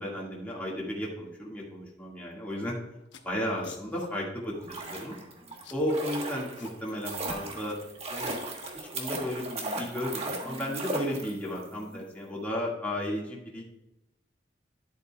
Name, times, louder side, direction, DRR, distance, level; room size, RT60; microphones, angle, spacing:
voice 1, 0.0-2.8 3.2-5.2 5.7-7.8 8.1-8.4 8.8-13.6, equal, 10° left, -5 dB, 1.9 m, -34 dB
sound 1, 2.5-2.7 3.0-4.1 4.4-4.5 4.7-5.2 5.5-6.8 7.0-9.2, left 4 dB, 80° left, 0.9 m, -51 dB
sound 2, 4.5-11.7 11.9-12.0, right 2 dB, 35° right, 1.4 m, -37 dB
11.0 x 8.0 x 2.4 m, 0.91 s
head